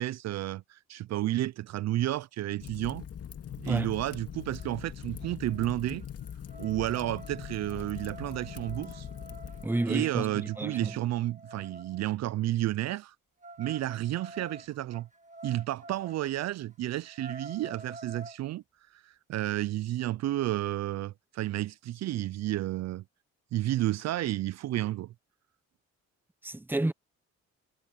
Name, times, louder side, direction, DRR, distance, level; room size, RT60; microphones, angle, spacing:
voice 1, 0.0-3.1 3.6-6.0 6.6-9.1 9.9-13.1 13.6-15.1 15.4-18.6 18.9-23.0 23.5-25.1, right 15 dB, 60° right, 0.4 m, -31 dB
Fire, 2.6-9.7, left 8 dB, 50° left, 2.3 m, -42 dB
voice 2, 3.6-3.9 9.6-11.0 26.4-26.9, right 2 dB, 5° right, 0.7 m, -31 dB
sound 1, 4.2-4.3 4.6-4.9 5.2-12.1 13.4-16.2 16.6-16.7 17.0-18.4, right 2 dB, 25° right, 1.7 m, -48 dB
cardioid pair, 90°, 30 cm